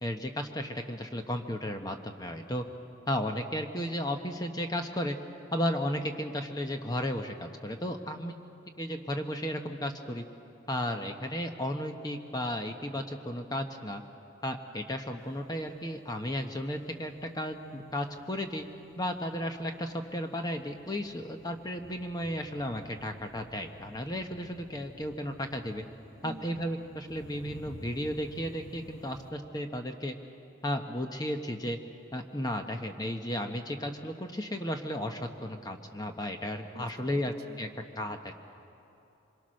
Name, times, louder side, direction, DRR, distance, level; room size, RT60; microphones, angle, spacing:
voice 1, 0.0-2.7 3.1-5.2 5.5-8.3 8.8-10.2 10.7-14.0 14.4-18.7 19.0-25.8 26.2-30.1 30.6-31.8 32.1-37.7 38.0-38.3, equal, 20° left, 5 dB, 1.0 m, -34 dB
sound 1, 15.2-29.3, equal, 85° left, 2.2 m, -53 dB
voice 2, 26.2-26.6 36.7-37.6, right 1 dB, 50° right, 6 dB, 1.2 m, -47 dB
25.5 x 22.5 x 6.4 m, 2.8 s
head